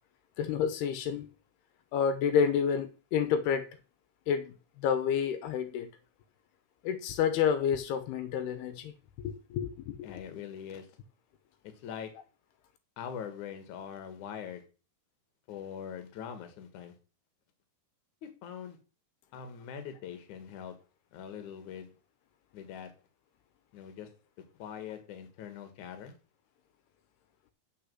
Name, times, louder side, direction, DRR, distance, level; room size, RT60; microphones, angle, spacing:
voice 1, 0.4-1.3 1.9-3.7 4.3-5.9 6.8-8.9 9.2-10.0, left 7 dB, 80° left, 2.9 m, -29 dB
voice 2, 10.0-10.9 11.6-12.1 13.0-14.6 15.5-17.0 18.2-18.8 19.3-20.8 21.1-21.9 22.5-22.9 23.7-24.1 24.6-26.2, left 8 dB, 60° left, 2.6 m, -42 dB
7.0 x 6.1 x 7.7 m
omnidirectional pair, 4.7 m